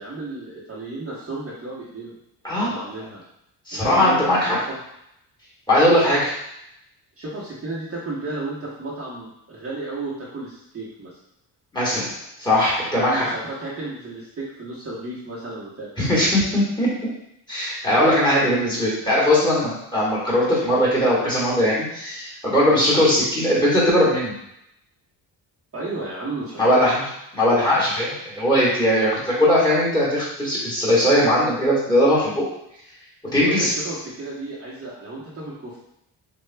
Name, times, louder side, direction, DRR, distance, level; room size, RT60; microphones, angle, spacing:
voice 1, 0.0-2.1 2.6-3.2 3.7-4.8 5.9-6.1 7.2-11.1 12.9-16.2 17.9-18.1 25.7-26.8 33.4-35.8, right 2 dB, 35° right, -7 dB, 0.9 m, -33 dB
voice 2, 3.7-4.6 5.7-6.3 11.7-12.1 12.4-13.3 16.0-16.9 17.5-24.3 26.6-27.0 27.3-32.4 33.3-33.7, left 1 dB, 10° left, -8 dB, 1.5 m, -19 dB
6.5 x 2.3 x 2.2 m, 0.79 s
cardioid pair, 140°, 42 cm